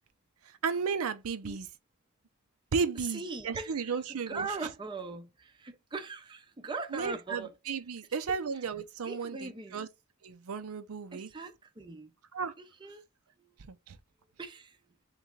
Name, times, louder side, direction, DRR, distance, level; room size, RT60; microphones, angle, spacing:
voice 1, 0.4-1.7 2.7-4.5 6.9-9.9 10.2-11.3 12.3-12.5 13.6-14.0, right 5 dB, 75° right, 0.5 m, -34 dB
voice 2, 3.1-7.5 8.3-8.4 9.0-9.9 11.1-12.1 12.6-13.0 13.4-13.6 14.4-14.8, right 3 dB, 20° right, 0.5 m, -40 dB
3.6 x 3.2 x 3.7 m
head